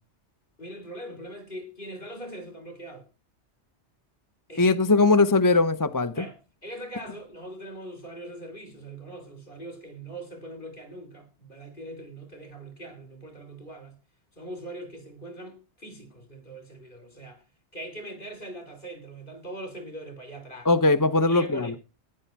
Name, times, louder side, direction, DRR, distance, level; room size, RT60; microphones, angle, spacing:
voice 1, 0.6-3.1 4.5-4.8 6.2-6.4 6.6-14.0 14.3-17.4 17.7-20.7 21.3-21.8, right 1 dB, 50° left, 3.9 m, -41 dB
voice 2, 4.6-6.1 20.7-21.7, left 3 dB, 20° left, 0.6 m, -20 dB
14.5 x 10.0 x 4.6 m
omnidirectional pair, 1.2 m